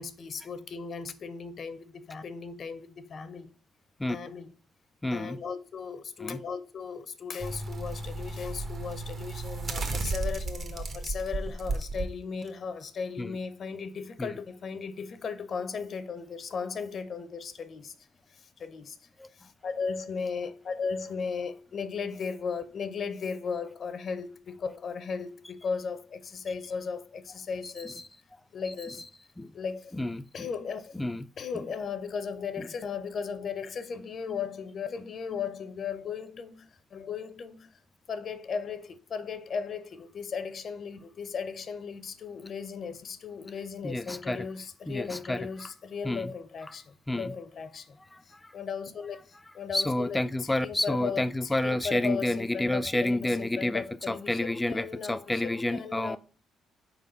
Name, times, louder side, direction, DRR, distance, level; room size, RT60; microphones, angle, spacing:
voice 1, 0.0-3.5 4.1-4.5 5.1-17.9 18.3-19.0 19.3-28.0 28.5-29.0 29.5-29.9 30.3-31.0 31.4-37.7 38.1-48.0 48.3-56.2, left 5 dB, 55° left, 0.6 m, -36 dB
voice 2, 5.0-5.4 6.2-6.4 13.2-13.4 14.2-14.3 19.2-19.3 27.6-28.0 28.9-29.0 29.4-29.5 29.9-30.5 30.9-31.3 43.8-44.5 44.9-45.5 46.0-46.3 47.1-47.3 48.1-48.5 49.7-56.2, left 1 dB, 10° left, 0.4 m, -30 dB
sound 1, 7.4-12.0 12.5-12.6, right 2 dB, 45° right, 1.1 m, -34 dB
4.5 x 4.0 x 5.6 m
cardioid pair, 90°, 0 cm